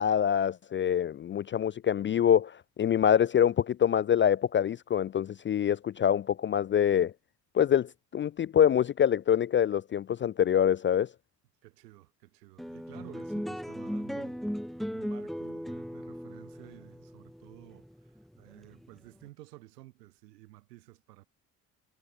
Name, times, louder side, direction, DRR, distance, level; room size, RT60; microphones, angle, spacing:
voice 1, 0.0-7.1 7.5-11.1, left 9 dB, 25° left, 0.4 m, -25 dB
voice 2, 11.6-14.4 14.9-17.9 18.4-21.3, right 18 dB, 80° right, 4.5 m, -52 dB
sound 1, 12.6-19.2, equal, ahead, 0.9 m, -37 dB
figure-of-eight pair, 45°, 48 cm